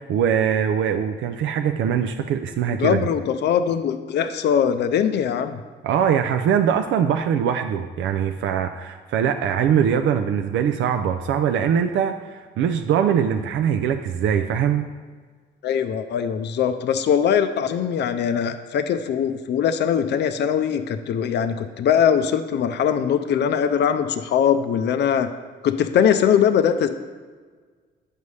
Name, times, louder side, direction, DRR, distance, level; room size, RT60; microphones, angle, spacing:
voice 1, 0.0-3.0 5.8-14.9, right 8 dB, 75° right, 7 dB, 0.4 m, -22 dB
voice 2, 2.7-5.6 15.6-25.3 25.6-26.9, left 8 dB, 60° left, 9 dB, 0.5 m, -21 dB
8.2 x 5.4 x 3.2 m, 1.5 s
cardioid pair, 90°, 20 cm